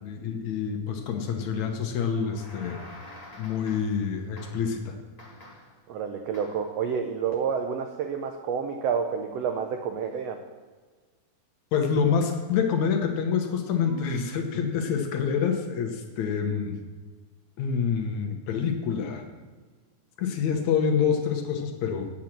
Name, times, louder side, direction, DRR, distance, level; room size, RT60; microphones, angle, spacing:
voice 1, 0.0-2.8 3.4-5.0 11.7-16.8 17.6-19.2 20.2-22.1, left 6 dB, 70° left, 4 dB, 2.1 m, -27 dB
sound 1, 2.1-4.1 4.4-4.8 5.2-5.8 6.3-6.7, left 1 dB, 35° left, 0.6 m, -47 dB
voice 2, 5.9-10.4, right 6 dB, 90° right, 5 dB, 1.4 m, -29 dB
Marimba xylophone / Wood, 13.9-16.1, right 8 dB, 70° right, 1.6 m, -46 dB
8.7 x 8.2 x 6.0 m, 1.4 s
omnidirectional pair, 3.7 m